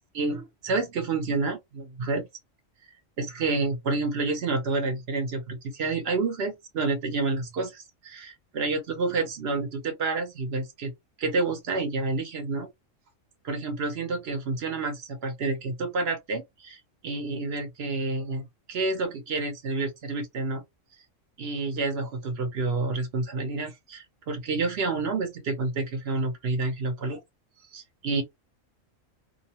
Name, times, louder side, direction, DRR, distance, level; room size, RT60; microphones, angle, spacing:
voice 1, 0.1-2.3 3.2-10.9 11.2-12.7 13.4-20.6 21.4-27.2 27.7-28.2, right 3 dB, 60° right, 0.8 m, -29 dB
2.6 x 2.0 x 2.8 m
omnidirectional pair, 1.4 m